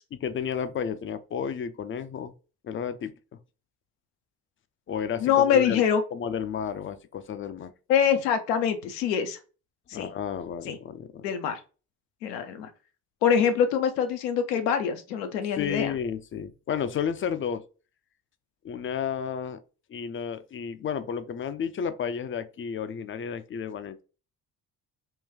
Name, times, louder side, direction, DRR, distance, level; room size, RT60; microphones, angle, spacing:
voice 1, 0.1-2.3 2.6-3.1 4.9-5.8 6.1-7.7 9.9-11.2 15.6-17.6 18.6-19.6 19.9-24.0, left 7 dB, 30° left, 0.4 m, -32 dB
voice 2, 5.2-6.0 7.9-9.4 9.9-10.1 10.7-10.8 11.2-11.6 12.2-12.7 13.2-15.9, left 8 dB, 85° left, 0.6 m, -24 dB
3.7 x 2.2 x 2.6 m
hypercardioid pair, 45°, 48 cm